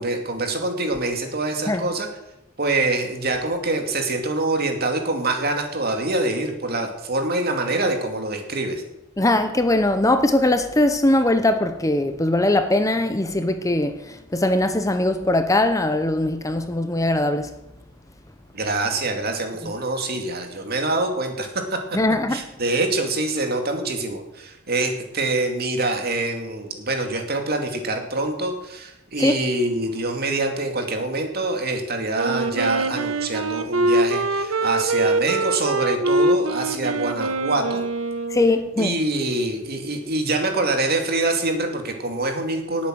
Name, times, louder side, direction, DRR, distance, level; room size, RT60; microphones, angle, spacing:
voice 1, 0.0-2.1 2.6-8.8 18.5-21.8 22.3-37.8 38.8-42.9, right 2 dB, 50° right, 2.5 m, -25 dB
voice 2, 9.2-17.5 21.9-22.4 29.2-29.3 38.3-38.9, left 1 dB, 15° left, 0.8 m, -20 dB
Wind instrument woodwind instrument, 32.2-38.8, right 2 dB, 90° right, 1.3 m, -23 dB
18.5 x 8.7 x 6.4 m
head